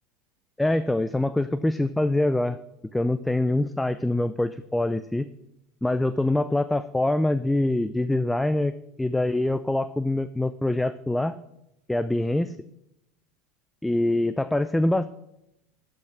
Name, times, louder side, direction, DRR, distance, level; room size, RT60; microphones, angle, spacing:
voice 1, 0.6-2.6 2.9-5.3 5.8-11.4 11.9-12.5 13.8-15.1, left 1 dB, 5° left, 13 dB, 0.4 m, -24 dB
11.5 x 5.9 x 6.2 m, 0.85 s
hypercardioid pair, 80°, 0 cm